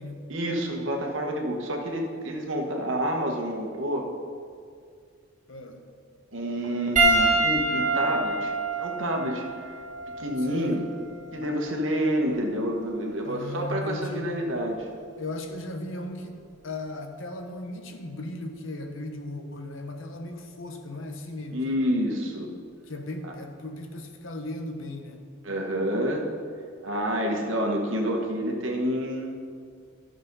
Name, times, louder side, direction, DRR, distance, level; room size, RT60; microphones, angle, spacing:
voice 1, 0.3-4.1 6.3-8.5 8.8-9.4 10.2-10.8 11.3-14.9 21.5-22.5 23.2-23.3 25.4-26.3 26.8-29.3, equal, 65° right, 1 dB, 1.4 m, -28 dB
voice 2, 5.5-5.8 10.4-10.8 13.2-14.3 15.2-21.8 22.9-25.2, left 2 dB, 65° left, 5 dB, 1.0 m, -37 dB
Piano, 7.0-11.6 12.6-12.7 14.7-14.8, right 2 dB, 35° right, 1.7 m, -26 dB
12.0 x 6.2 x 5.4 m, 2.2 s
head